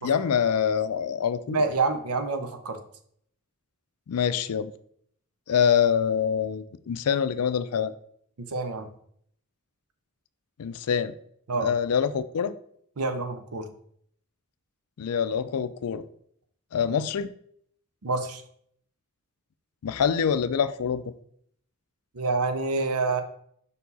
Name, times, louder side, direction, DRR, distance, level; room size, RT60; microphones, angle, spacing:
voice 1, 0.0-1.6 4.1-4.7 5.5-7.9 10.6-11.2 11.6-12.6 15.0-16.0 16.7-17.3 19.8-21.0, left 7 dB, 80° left, 13 dB, 0.4 m, -25 dB
voice 2, 1.5-2.8 8.5-8.9 11.5-11.7 13.0-13.7 18.0-18.4 22.1-23.2, right 3 dB, 75° right, 8 dB, 0.7 m, -27 dB
5.4 x 4.6 x 4.1 m, 0.66 s
head